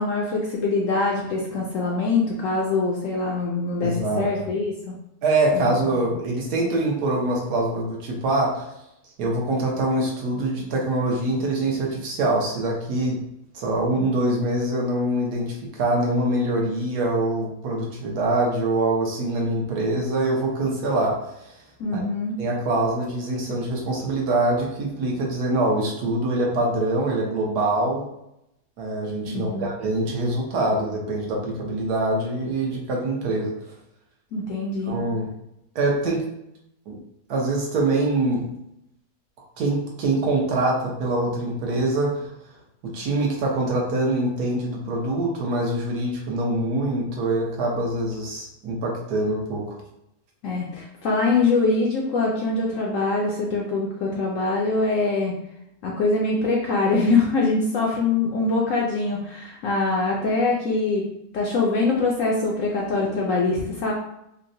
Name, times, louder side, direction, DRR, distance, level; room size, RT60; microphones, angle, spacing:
voice 1, 0.0-5.0 5.5-5.7 21.8-22.4 29.3-29.7 34.3-35.0 50.4-55.4 55.8-61.1 61.3-63.9, left 3 dB, 70° left, -2 dB, 0.8 m, -23 dB
voice 2, 3.8-4.2 5.2-8.7 9.2-13.2 13.5-21.2 21.4-21.5 21.9-22.0 22.4-28.1 28.8-33.5 34.9-35.3 35.7-36.2 36.9-37.0 37.3-38.5 39.6-42.3 42.9-49.8, right 2 dB, 75° right, -2 dB, 1.3 m, -24 dB
4.5 x 2.1 x 2.6 m, 0.83 s
omnidirectional pair, 1.8 m